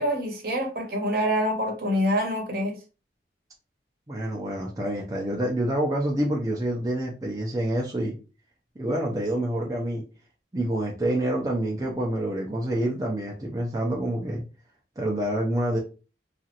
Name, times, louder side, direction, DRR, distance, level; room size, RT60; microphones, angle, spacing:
voice 1, 0.0-2.8, equal, 55° right, 0.8 m, -26 dB
voice 2, 4.1-8.2 8.8-10.0 10.5-14.4 15.0-15.8, right 1 dB, 20° right, 0.5 m, -27 dB
2.9 x 2.4 x 2.8 m
head